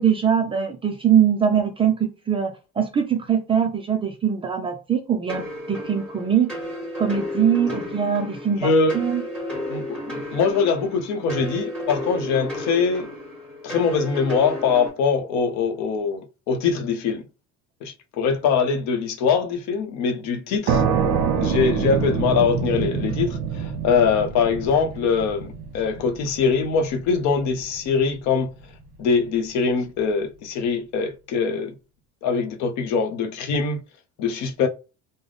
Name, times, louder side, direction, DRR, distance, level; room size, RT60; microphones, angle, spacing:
voice 1, 0.0-6.5 7.0-9.2, right 8 dB, 15° right, 0.3 m, -22 dB
sound 1, 5.3-14.9, left 1 dB, 5° left, 1.5 m, -33 dB
voice 2, 8.6-9.0 9.7-13.1 13.6-17.3 17.8-20.8 21.4-28.5 29.0-31.7 32.2-33.8 34.2-34.7, left 5 dB, 55° left, 0.7 m, -23 dB
sound 2, 20.7-28.1, right 6 dB, 45° right, 1.0 m, -26 dB
3.3 x 2.1 x 3.8 m
cardioid pair, 165°, 33 cm